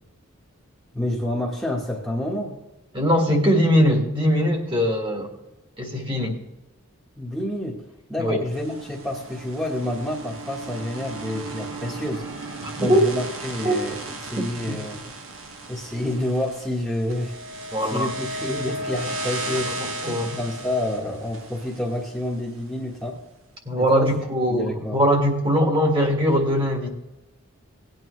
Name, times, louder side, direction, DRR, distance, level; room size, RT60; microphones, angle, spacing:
voice 1, 0.9-2.6 7.2-7.8 8.1-12.3 12.8-15.0 15.7-17.4 17.8-19.9 20.4-23.2 23.7-24.1 24.5-25.0, left 1 dB, ahead, -3 dB, 1.4 m, -28 dB
voice 2, 2.9-5.3 5.8-6.4 8.2-8.4 12.6-13.0 13.6-13.8 14.7-14.8 17.7-18.1 19.7-20.4 23.7-26.9, equal, 25° right, 2 dB, 1.8 m, -21 dB
sound 1, 8.5-22.7, right 2 dB, 65° right, 1.5 m, -35 dB
18.0 x 9.2 x 3.2 m, 1.0 s
head